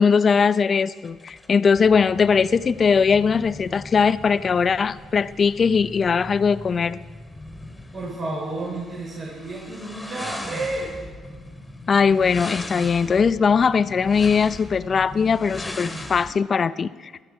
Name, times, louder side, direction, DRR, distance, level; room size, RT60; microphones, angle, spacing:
voice 1, 0.0-7.0 11.9-17.1, left 6 dB, 40° left, 15 dB, 0.5 m, -20 dB
sound 1, 1.0-16.3, left 1 dB, 10° left, 2.5 m, -39 dB
voice 2, 7.9-10.9, right 2 dB, 45° right, -4 dB, 4.3 m, -31 dB
20.0 x 12.5 x 4.8 m, 1.5 s
cardioid pair, 85°, 0 cm